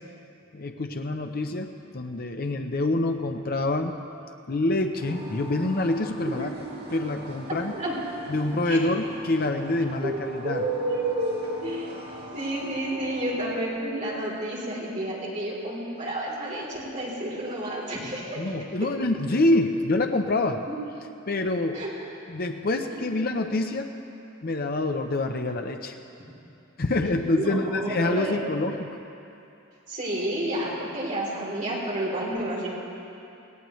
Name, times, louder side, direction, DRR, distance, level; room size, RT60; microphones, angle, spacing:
voice 1, 0.5-4.0 4.5-6.5 6.9-7.7 8.3-10.6 18.4-20.6 21.3-21.8 22.3-23.9 24.4-26.0 26.8-28.9, left 2 dB, 50° left, 5 dB, 0.7 m, -26 dB
sound 1, 5.0-13.6, right 1 dB, 55° right, 2.4 m, -42 dB
voice 2, 7.5-8.0 8.7-8.8 10.0-11.9 12.3-18.4 18.8-18.9 20.7-20.8 21.7-21.9 22.9-23.2 27.3-28.4 29.9-32.7, right 1 dB, 40° right, -5 dB, 3.4 m, -30 dB
18.0 x 18.0 x 3.2 m, 2.8 s
head